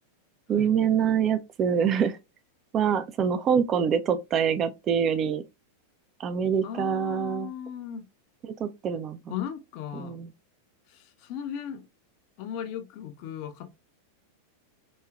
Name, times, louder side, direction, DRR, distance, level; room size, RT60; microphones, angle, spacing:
voice 1, 0.5-2.2 2.7-5.4 6.2-7.5 8.4-9.4 9.9-10.3, right 7 dB, 30° right, 0.3 m, -25 dB
voice 2, 6.6-8.1 9.3-10.2 10.9-11.9 12.4-13.8, left 9 dB, 45° left, 0.5 m, -36 dB
3.0 x 2.7 x 2.3 m
figure-of-eight pair, 90°, 0 cm